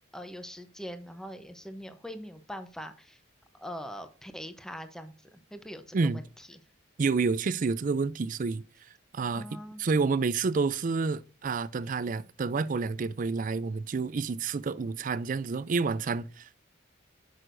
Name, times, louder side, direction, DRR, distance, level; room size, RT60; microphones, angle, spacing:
voice 1, 0.1-3.2 3.5-6.6 9.3-9.8, equal, 5° left, 0.7 m, -42 dB
voice 2, 7.0-8.6 9.1-9.5 9.8-16.6, right 4 dB, 45° right, 0.4 m, -29 dB
8.7 x 6.5 x 2.6 m
head